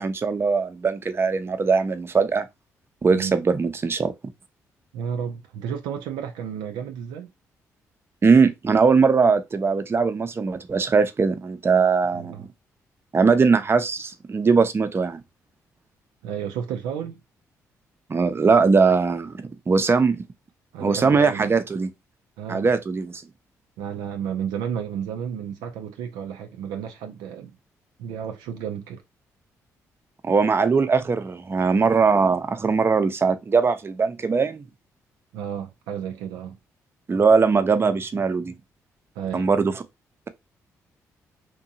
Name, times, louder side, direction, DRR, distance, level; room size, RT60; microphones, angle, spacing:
voice 1, 0.0-2.5 3.0-4.1 8.2-12.4 13.1-15.2 18.1-20.2 20.8-21.9 22.5-23.2 30.2-34.6 37.1-38.5 39.3-39.7, right 5 dB, 35° right, 0.5 m, -20 dB
voice 2, 4.9-7.3 12.1-12.5 16.2-17.2 20.7-21.6 22.4-22.7 23.8-27.6 28.0-29.0 35.3-36.6 39.2-39.5, right 8 dB, 90° right, 0.4 m, -32 dB
2.7 x 2.2 x 2.7 m
supercardioid pair, 55°, 7 cm